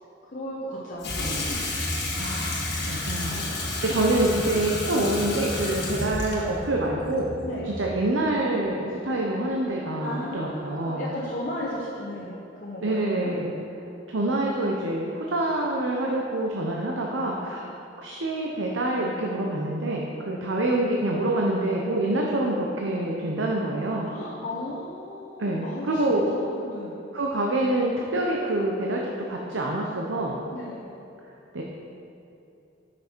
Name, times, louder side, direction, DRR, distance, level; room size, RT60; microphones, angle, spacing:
voice 1, 0.3-1.6 3.3-3.8 4.4-4.6 7.4-7.7 9.8-13.3 24.1-26.9 30.5-30.9, left 1 dB, 40° left, -7 dB, 1.0 m, -36 dB
Water tap faucet / Sink (filling or washing), 1.0-8.0, left 2 dB, 60° left, 1.5 m, -31 dB
voice 2, 2.1-3.4 3.8-7.3 7.6-11.1 12.8-13.5 14.1-17.7 18.0-24.1 25.4-26.3 27.1-29.0 29.3-30.4 31.5-31.6, right 1 dB, 85° right, -1 dB, 0.8 m, -26 dB
9.1 x 6.1 x 4.5 m, 2.8 s
head